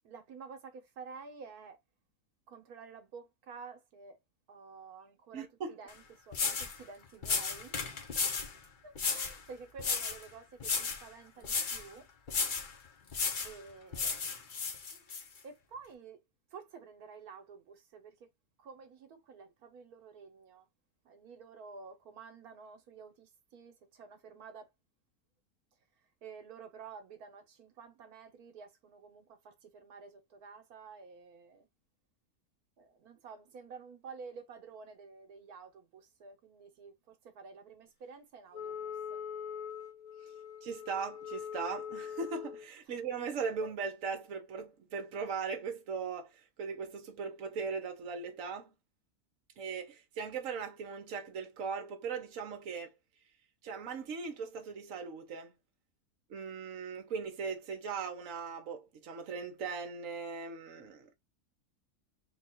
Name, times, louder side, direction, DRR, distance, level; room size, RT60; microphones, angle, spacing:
voice 1, 0.0-1.8 2.5-4.2 4.5-5.5 5.8-7.9 8.8-12.1 13.4-14.3 15.4-16.2 16.5-18.3 18.6-20.6 21.0-24.7 26.2-31.7 32.8-39.2, right 5 dB, 85° right, 1.5 m, -51 dB
voice 2, 5.3-5.8 40.2-40.3 40.6-48.7 49.6-52.9 53.6-55.5 56.3-61.1, right 5 dB, 65° right, 1.3 m, -39 dB
sound 1, 5.9-6.0 6.3-6.8 7.2-8.5 9.0-9.4 9.8-10.2 10.6-11.0 11.4-11.8 12.3-12.7 13.1-13.5 13.9-15.2, left 5 dB, 45° left, 0.7 m, -33 dB
Wind instrument woodwind instrument, 38.5-42.7, left 8 dB, 80° left, 1.9 m, -42 dB
3.8 x 2.4 x 4.2 m
omnidirectional pair, 1.5 m